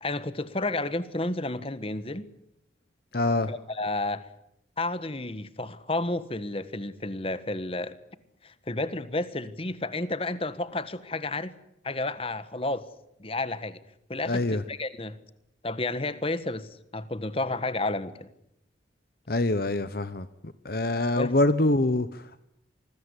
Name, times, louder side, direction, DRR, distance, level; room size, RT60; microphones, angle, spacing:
voice 1, 0.0-2.3 3.5-4.3 4.8-8.0 8.4-11.5 11.8-12.9 13.2-13.8 14.1-15.2 15.6-18.3 21.2-21.3, left 2 dB, 30° left, 1.4 m, -31 dB
voice 2, 3.1-3.5 14.3-14.6 19.3-20.3 20.6-22.4, left 2 dB, 55° left, 1.0 m, -25 dB
26.5 x 20.5 x 9.8 m
head